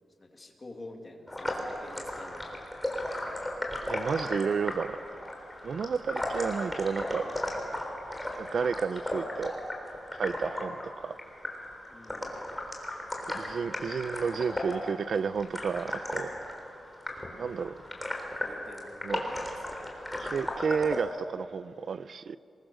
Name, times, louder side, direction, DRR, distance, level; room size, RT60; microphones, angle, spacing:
voice 1, 0.2-2.6 11.9-12.4 18.4-19.0, left 2 dB, 25° left, 2.5 m, -48 dB
sound 1, 1.3-21.0, left 1 dB, 10° left, 3.7 m, -36 dB
voice 2, 3.9-5.0 5.6-7.3 8.4-9.5 10.1-10.8 11.0-11.2 13.3-16.3 17.4-17.7 19.0-19.2 20.2-22.4, right 6 dB, 60° right, 0.5 m, -31 dB
26.5 x 21.5 x 6.5 m
wide cardioid pair, 140°, 0 cm